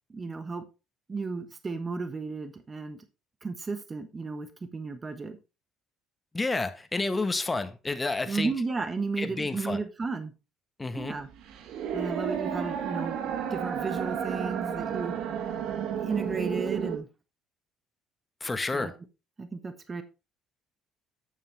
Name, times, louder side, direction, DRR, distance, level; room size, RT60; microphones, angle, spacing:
voice 1, 0.1-0.7 1.1-3.0 3.4-5.4 8.3-10.3 10.9-11.3 11.9-15.2 16.0-17.1 18.7-18.9 19.4-20.0, right 4 dB, 30° right, 1.3 m, -34 dB
voice 2, 6.3-8.5 9.2-9.8 10.8-11.1 18.4-18.9, left 3 dB, 20° left, 1.3 m, -30 dB
sound 1, 11.0-17.0, right 8 dB, 70° right, 1.2 m, -32 dB
9.0 x 7.2 x 3.3 m
hypercardioid pair, 65°, 0 cm